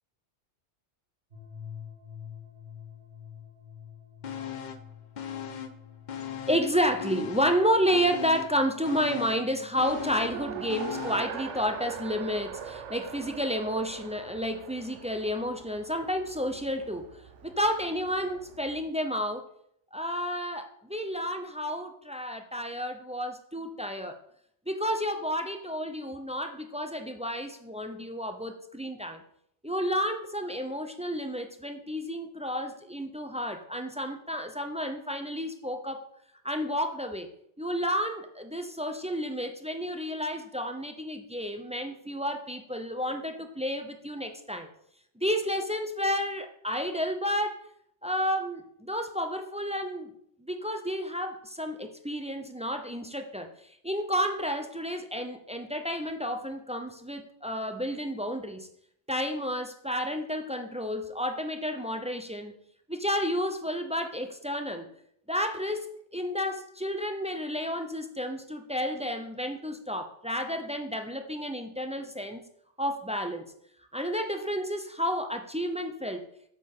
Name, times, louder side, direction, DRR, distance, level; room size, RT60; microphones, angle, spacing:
sound 1, 1.3-17.5, left 8 dB, 65° right, 2.5 m, -51 dB
sound 2, 4.2-4.9 5.2-6.7 7.0-11.4 11.7-11.8, left 9 dB, 50° left, 0.7 m, -39 dB
voice 1, 6.5-17.1 17.4-19.4 19.9-24.1 24.7-29.2 29.6-36.0 36.4-37.3 37.6-44.7 45.2-47.6 48.0-50.1 50.4-53.5 53.8-58.7 59.1-62.5 62.9-64.9 65.3-72.4 72.8-73.5 73.9-76.2, equal, 10° right, 6 dB, 0.3 m, -31 dB
Race car auto racing, 9.7-18.8, right 7 dB, 85° right, 1.0 m, -42 dB
8.4 x 6.6 x 3.6 m, 0.70 s
omnidirectional pair, 1.2 m